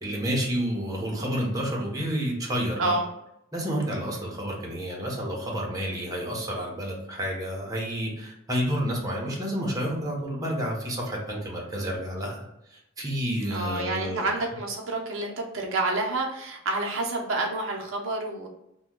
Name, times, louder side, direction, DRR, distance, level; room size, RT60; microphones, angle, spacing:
voice 1, 0.0-2.9 3.5-12.4 12.7-14.5, equal, 20° right, -2 dB, 0.8 m, -30 dB
voice 2, 13.5-18.5, right 2 dB, 70° right, 0 dB, 0.6 m, -28 dB
2.8 x 2.2 x 3.5 m, 0.84 s
head